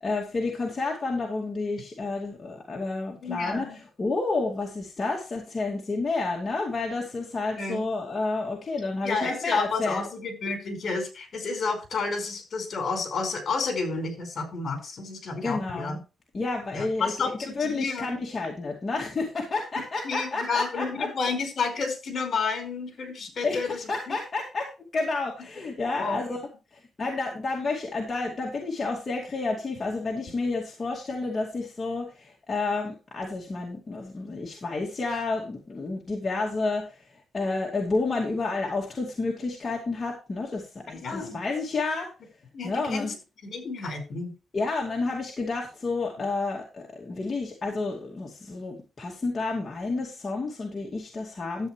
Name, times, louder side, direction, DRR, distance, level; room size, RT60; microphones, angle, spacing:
voice 1, 0.0-3.7 4.0-10.0 15.4-16.0 16.3-21.1 23.4-37.0 37.3-42.1 42.6-43.1 44.5-51.7, left 3 dB, 30° left, -1 dB, 2.4 m, -30 dB
voice 2, 3.2-3.8 7.6-7.8 9.0-16.0 16.7-18.2 20.0-24.1 25.9-26.2 41.0-41.4 42.5-43.1 43.4-44.3, left 4 dB, 50° left, 6 dB, 4.7 m, -30 dB
12.5 x 8.7 x 3.2 m, 0.30 s
cardioid pair, 125°, 0 cm